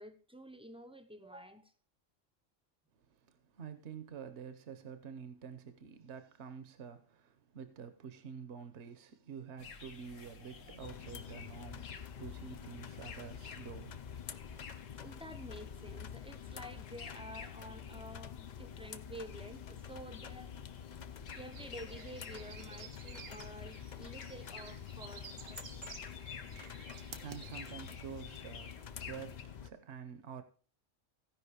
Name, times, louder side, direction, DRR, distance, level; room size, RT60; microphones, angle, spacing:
voice 1, 0.0-1.7 14.9-20.5 21.4-25.8, right 1 dB, 5° right, 0.6 m, -50 dB
voice 2, 3.1-14.0 26.7-30.4, right 7 dB, 65° right, 1.1 m, -48 dB
sound 1, 9.6-29.4, left 6 dB, 80° left, 1.3 m, -53 dB
sound 2, 10.8-29.7, left 8 dB, 55° left, 0.5 m, -48 dB
sound 3, 21.3-28.0, right 6 dB, 85° right, 1.4 m, -53 dB
15.5 x 5.2 x 4.9 m
omnidirectional pair, 1.3 m